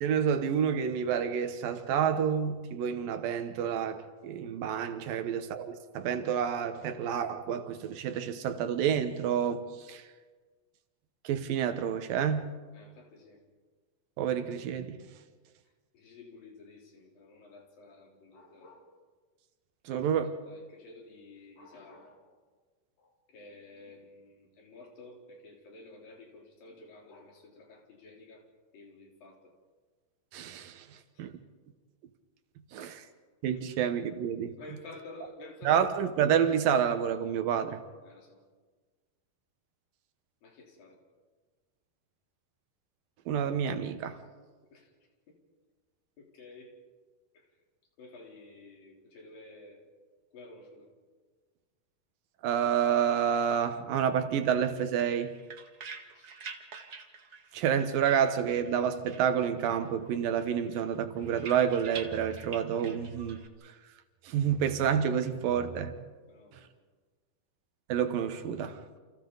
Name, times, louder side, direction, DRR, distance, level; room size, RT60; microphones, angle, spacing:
voice 1, 0.0-10.0 11.2-12.5 14.2-15.0 19.9-20.4 30.3-30.9 31.2-31.4 32.7-33.0 33.4-34.6 35.6-37.8 43.3-44.2 52.4-55.4 57.5-63.4 64.3-65.9 67.9-68.8, right 8 dB, 85° right, 3.0 m, -29 dB
voice 2, 12.7-13.4 15.9-18.9 19.9-20.0 20.5-22.4 23.0-28.4 28.7-29.6 31.1-31.3 32.8-33.0 33.7-33.8 34.6-35.9 38.0-38.4 40.4-41.0 44.4-44.9 45.3-45.4 46.2-46.8 47.3-47.5 48.0-49.8 50.3-50.9 56.1-56.4 65.5-65.6 66.3-66.7, left 2 dB, 85° left, 5.4 m, -52 dB
sound 1, 55.2-58.8 59.1-59.9 60.2-63.5, right 5 dB, 60° right, 1.0 m, -47 dB
29.5 x 28.5 x 4.0 m
omnidirectional pair, 3.9 m